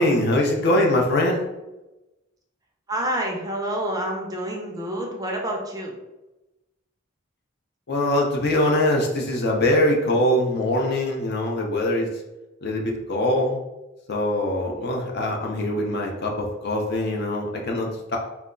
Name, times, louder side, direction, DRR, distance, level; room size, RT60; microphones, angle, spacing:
voice 1, 0.0-1.4 7.9-12.1 12.6-13.6 14.1-18.2, left 1 dB, 55° left, 1 dB, 0.5 m, -22 dB
voice 2, 2.9-6.0, right 1 dB, 20° right, 0 dB, 0.4 m, -28 dB
2.2 x 2.0 x 3.6 m, 1.0 s
head